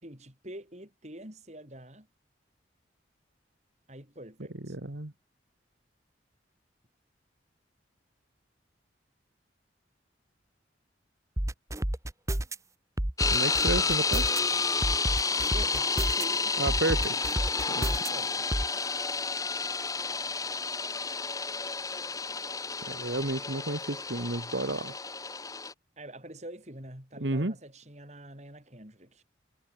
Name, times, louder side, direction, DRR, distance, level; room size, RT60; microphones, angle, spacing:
voice 1, 0.0-2.1 3.9-4.8 15.5-17.1 17.4-17.5 17.8-18.7 26.0-29.2, right 1 dB, 35° right, 6.3 m, -46 dB
voice 2, 4.7-5.1 13.3-14.2 16.6-17.0 17.8-17.9 22.9-25.0 27.2-27.5, right 2 dB, 75° right, 1.7 m, -31 dB
sound 1, 11.4-12.6 13.0-14.4 14.8-16.2 16.7-18.1 18.5-18.7, right 1 dB, 15° right, 1.1 m, -29 dB
sound 2, 13.2-25.7, left 4 dB, 20° left, 2.9 m, -30 dB
head